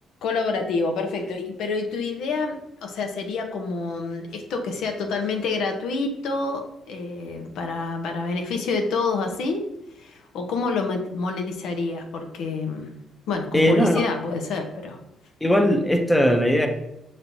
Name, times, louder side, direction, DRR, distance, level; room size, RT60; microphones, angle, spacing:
voice 1, 0.2-9.6 10.0-12.9 13.3-15.0, left 3 dB, 80° left, 4 dB, 0.7 m, -27 dB
voice 2, 13.5-14.1 15.4-16.7, equal, 5° left, 5 dB, 0.6 m, -19 dB
5.8 x 3.1 x 2.6 m, 0.84 s
cardioid pair, 90°, 0 cm